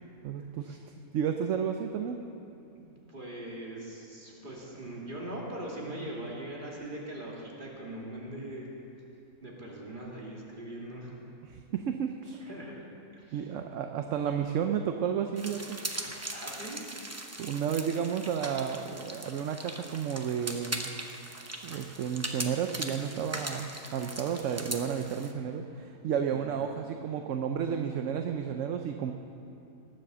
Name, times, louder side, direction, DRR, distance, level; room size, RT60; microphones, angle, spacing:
voice 1, 0.2-0.8 1.1-2.2 11.4-12.5 13.3-16.2 17.4-20.9 21.6-29.1, right 8 dB, 65° right, 5 dB, 0.9 m, -32 dB
voice 2, 3.1-8.7 9.4-11.2 12.4-12.8 13.1-13.5 16.3-16.8 26.2-26.5, right 1 dB, 35° right, -3 dB, 2.6 m, -41 dB
sound 1, 15.4-25.3, right 1 dB, 15° right, 0.6 m, -40 dB
19.5 x 7.7 x 6.8 m, 2.8 s
omnidirectional pair, 1.6 m